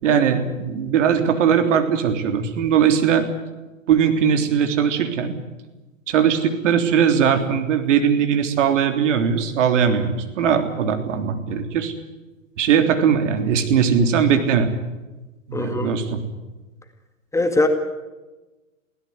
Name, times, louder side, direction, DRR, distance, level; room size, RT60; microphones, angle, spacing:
voice 1, 0.0-3.3 3.9-5.3 6.1-11.9 12.6-14.7 15.5-16.2, right 7 dB, 60° right, 6 dB, 3.5 m, -19 dB
voice 2, 15.5-15.9 17.3-17.7, left 2 dB, 5° left, 6 dB, 2.0 m, -21 dB
22.5 x 17.0 x 9.5 m, 1.1 s
hypercardioid pair, 120°, 41 cm